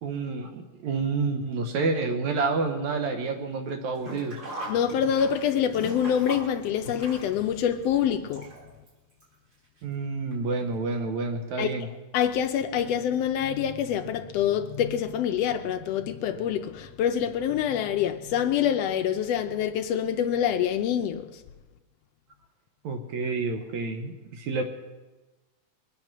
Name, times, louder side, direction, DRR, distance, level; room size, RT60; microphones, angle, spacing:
voice 1, 0.0-4.4 9.8-11.9 22.8-24.6, right 4 dB, 70° right, 2.3 m, -29 dB
Sink (filling or washing), 3.9-8.9 9.2-9.3 10.3-10.4 10.7-10.8, equal, 30° right, 3.8 m, -39 dB
voice 2, 4.7-8.5 11.6-11.7 12.1-21.4, left 9 dB, 85° left, 1.4 m, -26 dB
22.0 x 9.1 x 6.0 m
omnidirectional pair, 3.6 m